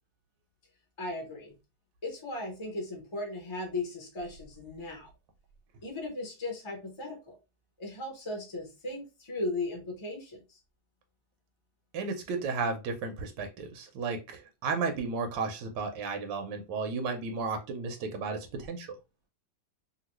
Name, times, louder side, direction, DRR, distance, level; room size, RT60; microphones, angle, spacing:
voice 1, 1.0-1.5 2.0-5.1 5.8-7.3 7.8-10.6, left 2 dB, 25° left, 0.6 m, -37 dB
voice 2, 11.9-18.9, right 4 dB, 85° right, 1.3 m, -33 dB
3.0 x 2.6 x 2.9 m
omnidirectional pair, 1.9 m